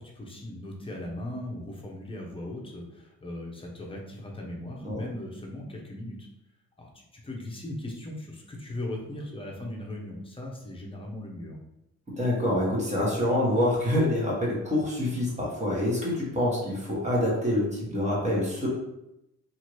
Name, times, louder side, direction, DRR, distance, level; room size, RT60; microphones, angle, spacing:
voice 1, 0.2-6.3 6.8-11.6, left 1 dB, 20° left, -1 dB, 0.8 m, -38 dB
voice 2, 12.2-18.7, left 1 dB, 25° right, -4 dB, 1.3 m, -26 dB
2.8 x 2.6 x 3.1 m, 0.87 s
cardioid pair, 90°, 30 cm